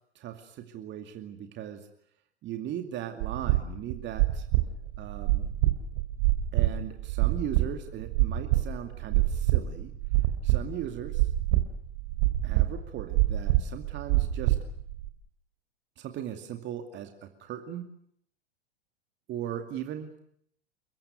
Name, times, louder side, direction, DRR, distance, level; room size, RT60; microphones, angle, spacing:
voice 1, 0.1-1.9 2.4-4.5 5.0-5.5 6.5-9.9 10.4-11.3 12.4-14.6 16.0-17.9 19.3-20.1, right 10 dB, 35° right, 5 dB, 2.4 m, -38 dB
sound 1, 3.2-15.1, right 16 dB, 50° right, 3.4 m, -26 dB
29.5 x 16.5 x 9.4 m, 0.69 s
figure-of-eight pair, 95°, 32 cm